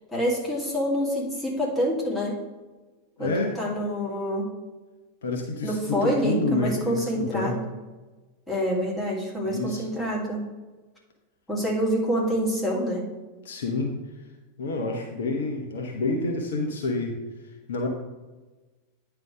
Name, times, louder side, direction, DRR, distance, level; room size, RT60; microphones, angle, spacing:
voice 1, 0.1-2.4 3.2-4.5 5.6-7.6 8.5-10.5 11.5-13.1, equal, 10° left, -5 dB, 2.5 m, -27 dB
voice 2, 3.2-3.6 5.2-7.6 9.5-9.9 13.4-14.0 14.6-17.2 17.7-17.9, left 2 dB, 60° left, 1 dB, 1.0 m, -28 dB
9.4 x 3.4 x 6.1 m, 1.2 s
figure-of-eight pair, 90°, 0 cm